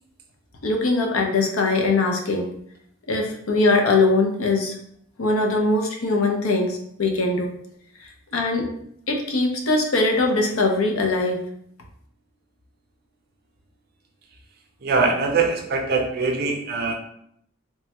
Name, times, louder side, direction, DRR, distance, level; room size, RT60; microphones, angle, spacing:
voice 1, 0.6-2.5 3.1-4.8 5.2-7.5 8.0-8.7 9.1-11.4, left 2 dB, 85° left, 2 dB, 0.6 m, -21 dB
voice 2, 14.8-16.9, right 4 dB, 45° right, 2 dB, 0.5 m, -22 dB
3.3 x 2.1 x 2.9 m, 0.70 s
head